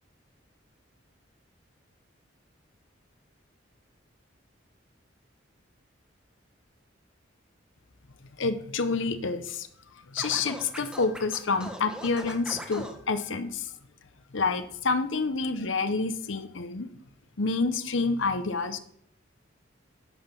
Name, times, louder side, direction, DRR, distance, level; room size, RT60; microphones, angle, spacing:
voice 1, 8.4-9.7 10.1-13.7 14.3-16.9 17.4-18.8, left 4 dB, 80° left, 10 dB, 0.8 m, -28 dB
Scratching (performance technique), 10.2-13.0, equal, 5° right, 1.1 m, -40 dB
8.7 x 5.6 x 6.9 m, 0.67 s
head